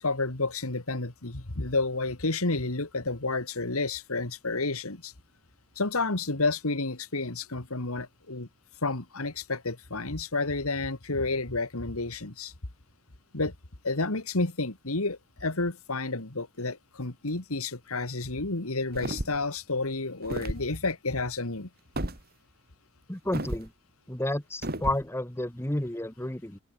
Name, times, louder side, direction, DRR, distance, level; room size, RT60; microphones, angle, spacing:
voice 1, 0.0-5.1 5.8-8.5 8.8-12.5 13.3-13.5 13.8-21.7, left 3 dB, 75° left, 2.3 m, -30 dB
sound 1, 18.9-19.5 20.2-20.7 22.0-22.2 23.3-23.7 24.6-25.0, right 1 dB, 45° right, 3.3 m, -32 dB
voice 2, 23.1-23.7 24.1-26.6, left 1 dB, 10° left, 1.3 m, -31 dB
open air
head